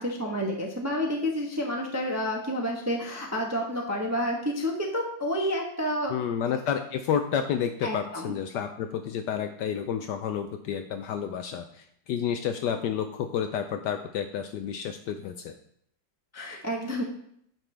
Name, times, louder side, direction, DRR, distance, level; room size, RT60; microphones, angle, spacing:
voice 1, 0.0-6.1 7.8-8.3 16.3-17.0, equal, 15° right, 0 dB, 0.6 m, -29 dB
voice 2, 6.1-15.5, left 8 dB, 75° left, 7 dB, 1.0 m, -30 dB
9.1 x 5.9 x 3.3 m, 0.69 s
omnidirectional pair, 2.1 m